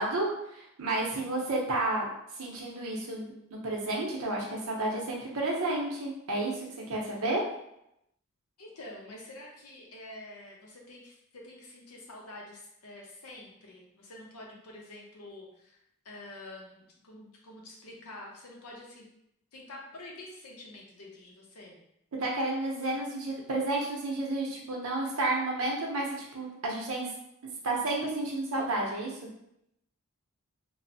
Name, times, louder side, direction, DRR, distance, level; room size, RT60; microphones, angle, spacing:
voice 1, 0.0-2.1 2.4-7.4 22.2-27.1 27.4-29.2, right 2 dB, 75° right, -2 dB, 0.7 m, -31 dB
voice 2, 8.6-15.8 16.0-19.1 19.5-21.8, left 1 dB, 85° left, -1 dB, 0.7 m, -47 dB
3.0 x 2.0 x 2.7 m, 0.80 s
head